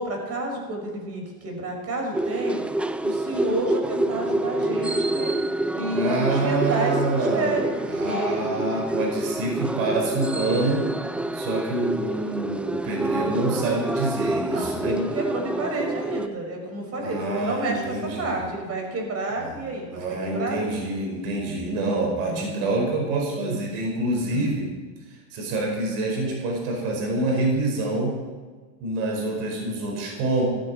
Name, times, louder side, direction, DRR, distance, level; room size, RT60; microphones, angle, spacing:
voice 1, 0.0-2.6 3.0-5.4 5.7-8.4 14.4-20.7 22.2-22.6 24.3-24.5, right 2 dB, 35° right, 2 dB, 5.6 m, -30 dB
sound 1, 2.1-16.3, right 1 dB, 5° right, 0.3 m, -27 dB
voice 2, 5.9-7.5 7.9-10.9 11.3-14.9 17.0-18.4 19.4-19.5 19.9-24.7 25.1-28.2 28.8-30.4, right 2 dB, 70° right, 0 dB, 5.1 m, -26 dB
16.0 x 14.0 x 4.4 m, 1.4 s
supercardioid pair, 115°, 40 cm